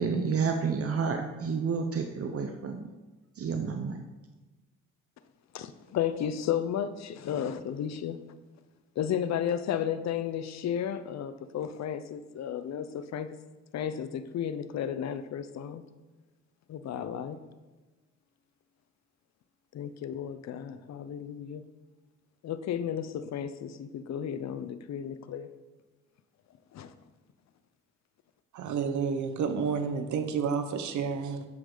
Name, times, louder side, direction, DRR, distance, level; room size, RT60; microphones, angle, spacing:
voice 1, 0.0-2.8 3.4-4.0, right 5 dB, 50° right, 5 dB, 0.9 m, -30 dB
voice 2, 5.5-8.2 9.0-13.3 13.7-15.8 16.7-17.4 19.7-21.6 22.4-25.5 26.7-26.9, left 9 dB, 60° left, 12 dB, 0.8 m, -33 dB
voice 3, 28.5-31.5, right 6 dB, 75° right, 8 dB, 1.1 m, -30 dB
10.5 x 7.9 x 4.0 m, 1.2 s
cardioid pair, 90°, 30 cm